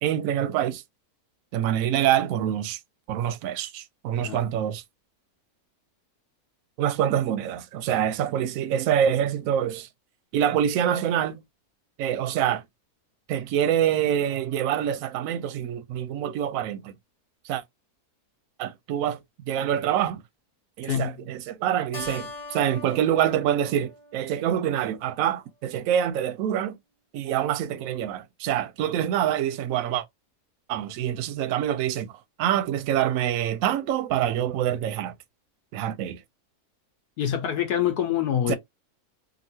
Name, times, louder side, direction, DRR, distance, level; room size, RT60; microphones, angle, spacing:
voice 1, 0.0-0.8 1.5-2.8 3.1-4.8 6.8-9.9 10.3-11.4 12.0-12.6 13.3-16.9 17.5-17.6 18.6-19.2 19.5-20.2 20.8-26.7 27.1-30.0 30.7-32.1 32.4-35.1 35.7-36.2 38.5-38.6, right 10 dB, 70° right, 0.9 m, -25 dB
Keyboard (musical), 21.9-24.8, left 3 dB, 45° left, 1.1 m, -41 dB
voice 2, 37.2-38.6, left 10 dB, 75° left, 1.2 m, -25 dB
2.9 x 2.7 x 2.7 m
omnidirectional pair, 1.7 m